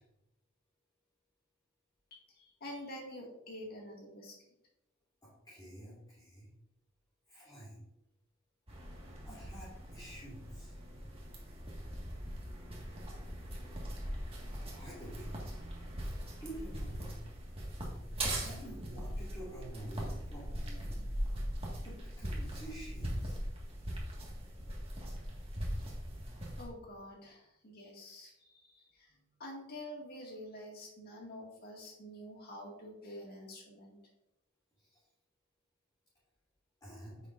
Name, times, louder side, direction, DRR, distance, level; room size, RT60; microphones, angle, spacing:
voice 1, 2.1-4.3 26.6-34.0, left 1 dB, 50° left, -1 dB, 2.0 m, -48 dB
voice 2, 5.2-6.5 7.3-7.8 9.2-10.7 14.6-15.3 16.4-17.2 18.3-21.0 21.8-23.4 34.8-35.0 36.8-37.2, right 1 dB, 20° left, -10 dB, 3.1 m, -48 dB
sound 1, 8.7-26.6, equal, 30° right, 1.7 m, -40 dB
9.6 x 6.5 x 2.6 m, 0.86 s
head